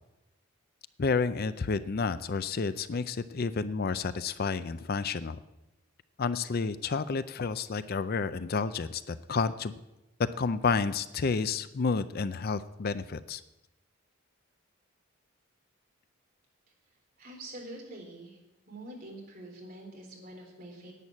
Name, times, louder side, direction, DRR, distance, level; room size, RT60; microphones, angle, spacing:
voice 1, 1.0-5.4 6.2-9.7 10.4-13.4, left 4 dB, 45° left, 13 dB, 0.5 m, -30 dB
voice 2, 17.2-18.4 18.7-20.9, right 1 dB, 45° right, 0 dB, 3.7 m, -45 dB
11.0 x 9.1 x 8.3 m, 0.97 s
head